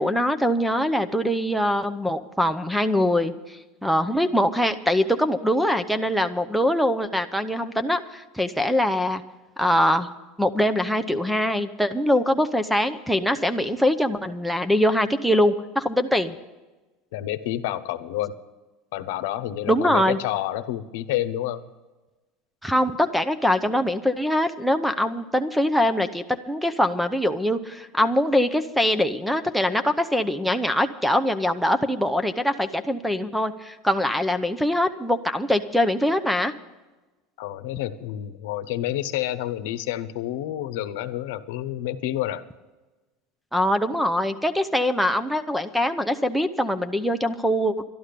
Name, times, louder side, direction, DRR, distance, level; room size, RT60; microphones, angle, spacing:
voice 1, 0.0-9.2 9.6-10.1 10.4-16.3 19.7-20.2 22.6-36.5 43.5-47.8, left 1 dB, ahead, 11 dB, 0.7 m, -23 dB
voice 2, 17.1-18.3 18.9-21.6 37.4-42.5, left 13 dB, 75° left, 11 dB, 0.9 m, -29 dB
12.5 x 11.5 x 6.7 m, 1.2 s
supercardioid pair, 105°, 0 cm